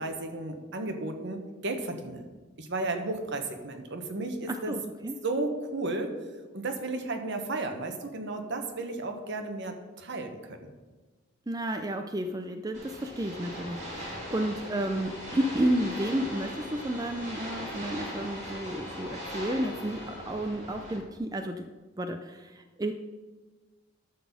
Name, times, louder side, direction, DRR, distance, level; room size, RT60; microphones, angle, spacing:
voice 1, 0.0-2.2 2.6-4.8 5.2-6.1 6.5-10.7, right 2 dB, 60° right, 5 dB, 1.2 m, -33 dB
voice 2, 4.5-5.1 11.5-21.7 22.0-22.9, right 1 dB, 20° right, 6 dB, 0.4 m, -31 dB
sound 1, 12.7-21.0, equal, 40° right, 3.3 m, -40 dB
Bowed string instrument, 15.0-20.3, left 3 dB, 60° left, 1.3 m, -52 dB
12.0 x 4.1 x 7.3 m, 1.3 s
head